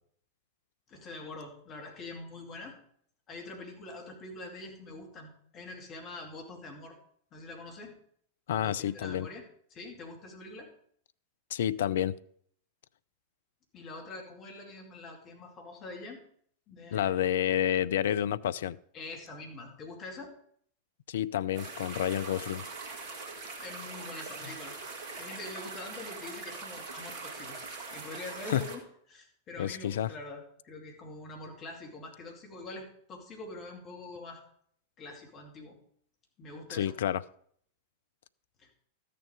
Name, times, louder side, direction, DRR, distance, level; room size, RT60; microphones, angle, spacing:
voice 1, 0.9-2.8 3.3-7.0 7.3-8.0 8.5-10.7 13.7-16.2 16.7-17.3 18.9-20.3 23.6-24.8 25.1-27.6 27.9-28.8 29.1-34.4 35.0-35.8 36.4-37.0 38.6-38.7, left 2 dB, 30° left, 1 dB, 2.5 m, -44 dB
voice 2, 8.5-9.3 11.5-12.2 16.9-18.8 21.1-22.6 28.5-28.6 29.6-30.1 36.7-37.2, left 10 dB, 60° left, 16 dB, 0.4 m, -29 dB
sound 1, 21.5-28.8, right 4 dB, 40° right, 2.2 m, -42 dB
13.5 x 6.8 x 5.0 m, 0.63 s
figure-of-eight pair, 90°, 0 cm